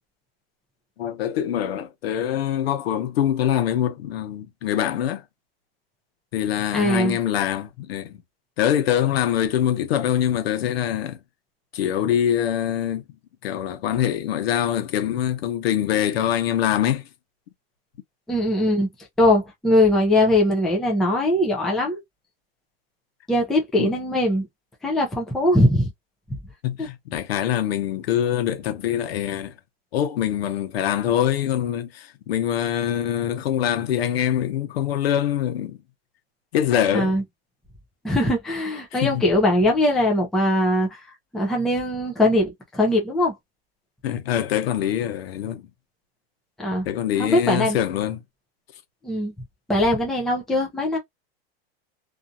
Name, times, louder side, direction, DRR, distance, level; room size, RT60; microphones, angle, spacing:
voice 1, 1.0-5.2 6.3-8.2 8.6-11.2 11.7-13.0 13.4-17.1 23.8-24.0 26.6-29.5 29.9-35.8 36.5-37.1 38.9-39.2 44.0-45.7 46.8-48.2, left 10 dB, 75° left, 0.9 m, -24 dB
voice 2, 6.7-7.2 18.3-18.9 19.2-22.0 23.3-24.5 24.8-25.9 26.8-26.9 36.9-37.2 38.0-41.0 41.3-43.3 46.6-46.9 47.2-47.8 49.0-49.3 49.7-51.0, left 1 dB, ahead, 0.5 m, -21 dB
2.7 x 2.6 x 2.2 m
supercardioid pair, 160°, 30 cm